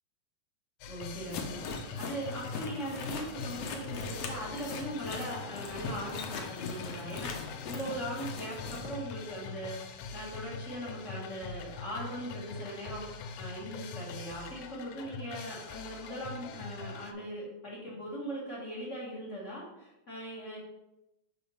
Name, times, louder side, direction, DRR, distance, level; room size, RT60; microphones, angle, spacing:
sound 1, 0.8-17.1, left 4 dB, 90° left, 2.0 m, -43 dB
voice 1, 0.9-20.6, equal, 35° left, -5 dB, 1.3 m, -40 dB
sound 2, 1.3-8.8, left 4 dB, 70° left, 1.7 m, -40 dB
5.8 x 3.8 x 5.5 m, 0.93 s
omnidirectional pair, 3.3 m